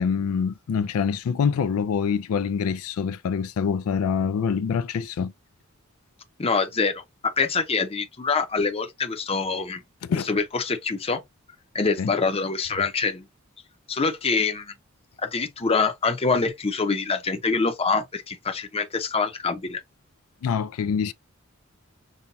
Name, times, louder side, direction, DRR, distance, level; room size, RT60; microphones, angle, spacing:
voice 1, 0.0-5.3 10.0-10.3 12.0-12.1 20.4-21.1, left 6 dB, 80° left, 0.3 m, -25 dB
voice 2, 6.4-9.8 10.1-11.2 11.7-13.3 13.9-14.7 15.2-19.8, left 4 dB, 30° left, 0.7 m, -25 dB
5.5 x 2.2 x 2.7 m
head